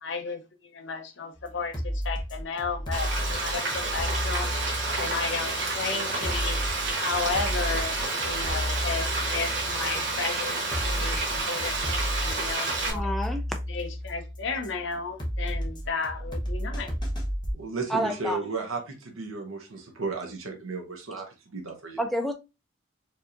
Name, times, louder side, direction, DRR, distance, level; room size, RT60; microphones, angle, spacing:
voice 1, 0.0-4.5 5.0-6.6 7.0-11.8 12.1-13.1 13.7-17.0, left 4 dB, 60° left, 0.6 m, -33 dB
sound 1, 1.4-17.5, equal, 20° left, 0.8 m, -33 dB
Frying (food), 2.9-12.9, right 2 dB, 60° right, 1.1 m, -29 dB
voice 2, 12.9-13.4 17.9-18.4 22.0-22.3, equal, ahead, 0.4 m, -29 dB
voice 3, 17.5-22.0, right 3 dB, 85° right, 0.8 m, -34 dB
4.5 x 2.7 x 2.5 m
head